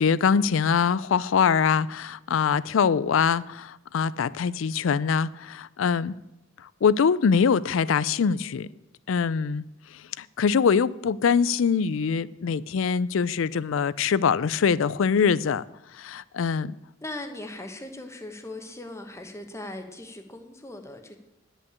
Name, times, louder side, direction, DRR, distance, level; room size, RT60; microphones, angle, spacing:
voice 1, 0.0-6.1 6.8-8.7 9.1-9.6 10.2-15.6 16.0-16.8, left 6 dB, 70° left, 0.4 m, -23 dB
voice 2, 17.0-21.2, left 1 dB, 15° left, 1.1 m, -39 dB
10.5 x 5.7 x 8.2 m
head